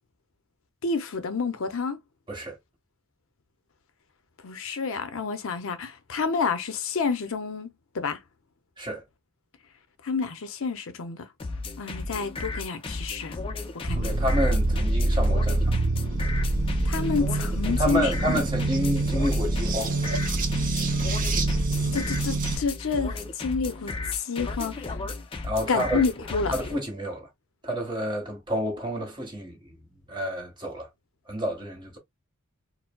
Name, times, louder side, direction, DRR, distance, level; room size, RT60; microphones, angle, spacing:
voice 1, 0.8-2.0 4.4-7.7 7.9-8.2 10.0-11.3 11.8-13.4 13.8-14.1 16.8-18.1 21.9-25.0 25.7-26.5, left 5 dB, 65° left, 0.6 m, -29 dB
sound 1, 11.4-26.8, left 3 dB, 25° left, 0.4 m, -34 dB
voice 2, 13.9-15.6 17.7-20.0 25.4-26.0 26.5-27.3 27.6-30.9 31.3-32.0, equal, 20° right, 1.4 m, -30 dB
sound 2, 13.9-22.6, right 2 dB, 40° right, 0.6 m, -25 dB
4.4 x 2.0 x 2.2 m
head